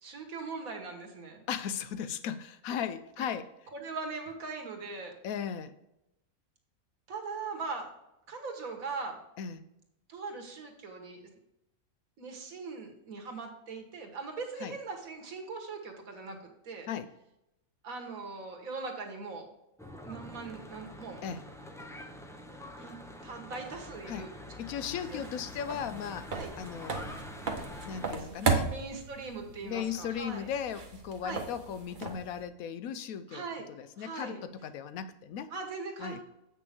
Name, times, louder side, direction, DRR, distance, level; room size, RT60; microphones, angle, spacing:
voice 1, 0.0-1.4 3.2-3.3 3.7-5.2 7.1-7.9 8.3-9.2 10.1-11.3 12.2-16.9 17.8-19.5 20.0-21.2 22.8-23.0 23.2-24.3 25.1-25.2 26.3-26.5 27.9-30.5 31.2-31.5 33.3-33.7 34.0-34.4 35.5-36.2, right 4 dB, 70° right, 3 dB, 1.8 m, -40 dB
voice 2, 1.5-3.5 5.2-5.7 9.4-9.6 14.6-14.7 16.9-17.1 21.2-21.5 24.1-24.3 24.6-27.2 27.8-28.7 29.6-33.4 33.7-35.5 36.0-36.2, left 8 dB, 75° left, 12 dB, 1.1 m, -37 dB
Church bell / Traffic noise roadway noise, 19.8-28.1, left 1 dB, 5° left, 0.3 m, -46 dB
Footsteps - hard heel (Female), 24.8-32.4, right 4 dB, 40° right, 0.9 m, -36 dB
7.8 x 6.2 x 3.5 m, 0.87 s
omnidirectional pair, 1.5 m